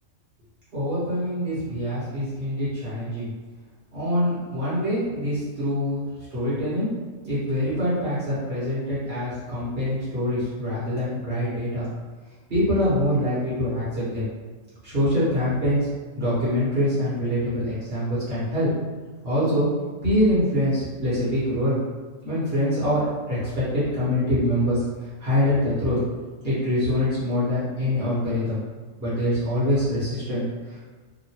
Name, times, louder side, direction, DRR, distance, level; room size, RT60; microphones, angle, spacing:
voice 1, 0.7-3.3 3.9-6.9 7.2-11.9 12.5-14.3 14.8-15.9 16.1-18.7 19.2-19.7 20.0-21.8 22.2-23.0 23.3-24.8 25.2-26.0 26.4-28.6 29.0-30.8, left 1 dB, 50° right, -10 dB, 1.3 m, -24 dB
3.0 x 2.5 x 2.8 m, 1.3 s
omnidirectional pair, 1.3 m